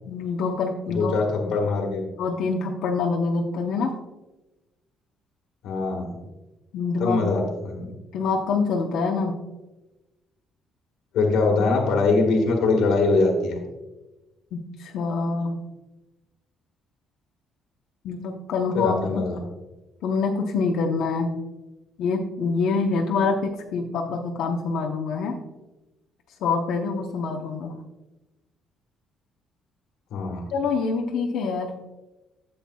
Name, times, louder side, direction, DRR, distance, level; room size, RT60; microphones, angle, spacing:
voice 1, 0.1-1.1 2.2-3.9 6.7-7.2 8.1-9.3 14.5-15.6 18.0-18.9 20.0-21.3 22.0-25.4 26.4-27.7 30.5-31.7, left 4 dB, 70° left, 0 dB, 0.9 m, -25 dB
voice 2, 0.9-2.1 5.6-6.2 7.0-7.9 11.1-13.6 18.7-19.4 30.1-30.4, left 3 dB, 90° left, 1 dB, 1.6 m, -22 dB
12.5 x 7.8 x 2.3 m, 1.1 s
cardioid pair, 165°, 0 cm